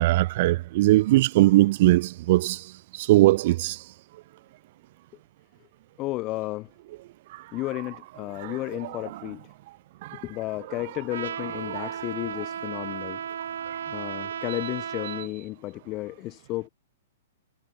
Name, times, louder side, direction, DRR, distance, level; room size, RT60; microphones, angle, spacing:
voice 1, 0.0-2.6 3.1-3.8 11.8-11.9, right 17 dB, 45° right, 1.1 m, -19 dB
voice 2, 6.0-6.7 7.5-9.5 10.1-13.2 13.9-16.7, left 19 dB, 25° left, 6.9 m, -33 dB
Trumpet, 11.1-15.3, right 8 dB, 80° right, 6.5 m, -34 dB
hypercardioid pair, 160°, 0 cm